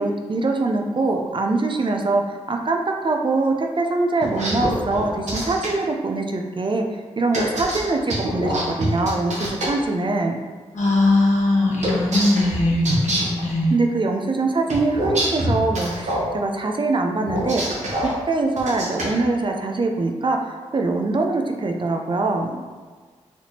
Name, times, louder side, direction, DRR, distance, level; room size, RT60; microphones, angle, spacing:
voice 1, 0.0-10.4 13.7-17.6 18.0-22.7, right 3 dB, 40° right, 3 dB, 0.5 m, -23 dB
sound 1, 4.2-5.7 7.3-9.7 11.8-13.4 14.7-16.2 17.3-18.1 18.6-19.1, right 1 dB, 65° right, 1.0 m, -25 dB
voice 2, 10.7-13.7, left 2 dB, 65° left, -3 dB, 1.0 m, -20 dB
4.2 x 2.9 x 2.8 m, 1.4 s
supercardioid pair, 45°, 13 cm